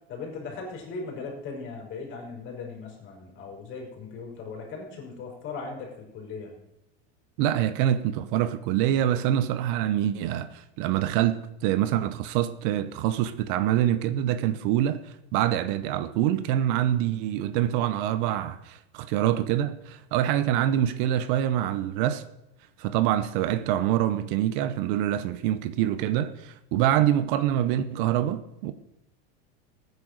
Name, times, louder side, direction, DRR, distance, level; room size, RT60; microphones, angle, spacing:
voice 1, 0.1-6.5, left 4 dB, 40° left, 4.9 m, -38 dB
voice 2, 7.4-22.2 22.8-28.7, right 11 dB, 55° right, 0.9 m, -25 dB
15.5 x 9.5 x 6.5 m
supercardioid pair, 155°, 31 cm